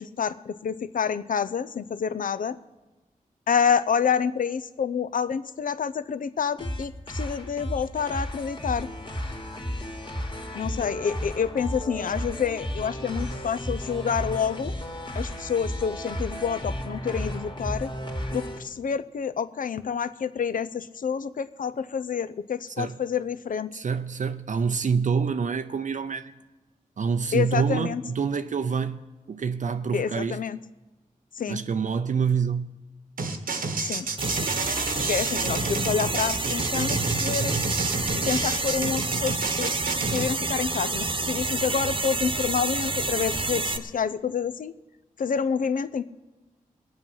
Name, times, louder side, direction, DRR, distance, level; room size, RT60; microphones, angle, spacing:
voice 1, 0.0-2.6 3.5-8.9 10.5-14.7 15.1-17.9 18.3-23.7 27.3-28.0 29.9-30.6 31.4-31.6 33.8-34.1 35.1-37.6 38.1-39.7 40.1-44.7 45.2-46.0, left 7 dB, 70° left, 0.5 m, -28 dB
sound 1, 6.6-18.6, equal, 35° left, 2.2 m, -33 dB
voice 2, 23.7-26.3 27.0-29.0 29.3-30.4 31.5-32.7, right 6 dB, 65° right, 0.5 m, -26 dB
sound 2, 33.2-40.3, right 3 dB, 85° right, 1.2 m, -29 dB
sound 3, 34.2-43.8, right 3 dB, 35° right, 1.0 m, -29 dB
21.0 x 7.7 x 5.6 m
cardioid pair, 50°, 14 cm